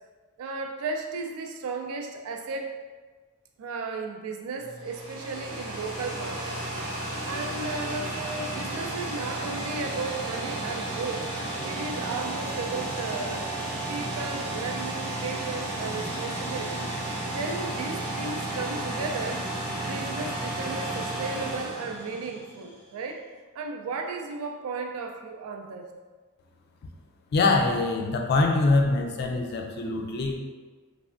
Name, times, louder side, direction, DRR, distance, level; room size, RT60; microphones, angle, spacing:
voice 1, 0.4-2.8 3.6-6.6 7.2-11.3 11.6-13.5 13.9-19.5 19.8-23.3 23.5-25.9, right 3 dB, 75° right, 4 dB, 0.3 m, -35 dB
sound 1, 4.6-22.7, right 1 dB, 20° right, 0.6 m, -33 dB
voice 2, 27.3-30.4, left 3 dB, 50° left, 2 dB, 0.3 m, -24 dB
3.3 x 2.1 x 2.4 m, 1.4 s
head